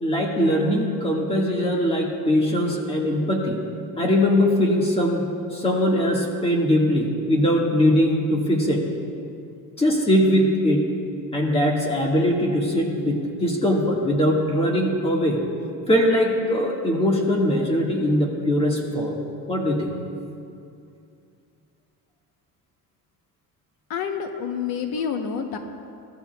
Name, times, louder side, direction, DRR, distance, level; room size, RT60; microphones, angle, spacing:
voice 1, 0.0-3.6 4.0-8.8 9.8-10.9 11.3-15.4 15.9-19.2 19.5-19.9, equal, 15° left, -1 dB, 1.7 m, -21 dB
voice 2, 23.9-25.6, left 7 dB, 75° left, 5 dB, 1.0 m, -28 dB
22.5 x 15.0 x 2.3 m, 2.5 s
cardioid pair, 160°, 37 cm